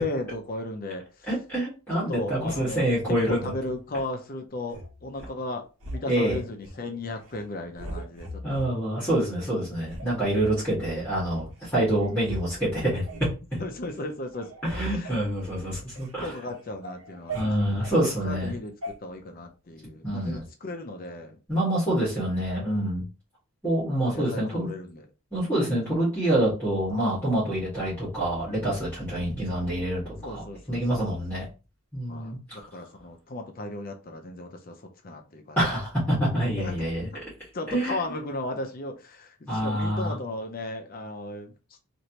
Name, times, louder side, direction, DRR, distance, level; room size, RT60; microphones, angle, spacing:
voice 1, 0.0-1.3 1.9-8.7 13.6-14.5 14.8-15.2 16.2-21.4 24.1-25.1 30.2-31.2 32.1-34.8 35.0-35.6 36.6-37.2 37.5-41.8, left 2 dB, 40° left, 4 dB, 0.5 m, -36 dB
voice 2, 1.3-3.5 6.1-6.4 8.4-13.3 14.6-16.3 17.3-18.5 20.0-20.4 21.5-23.0 23.6-24.7 25.3-30.4 30.7-31.4 31.9-32.6 35.6-37.1 37.7-38.0 39.5-40.2, right 1 dB, 10° left, -11 dB, 1.4 m, -26 dB
sound 1, 4.7-5.4 5.8-6.8 7.2-7.4 7.8-8.7 9.2-9.3 9.8-11.0 11.6-11.7 12.0-12.4 12.7-13.4 13.8-14.1 14.3-16.1 16.5-18.0 18.8-18.9, right 1 dB, 80° right, 1.0 m, -39 dB
3.2 x 2.6 x 2.8 m, 0.32 s
head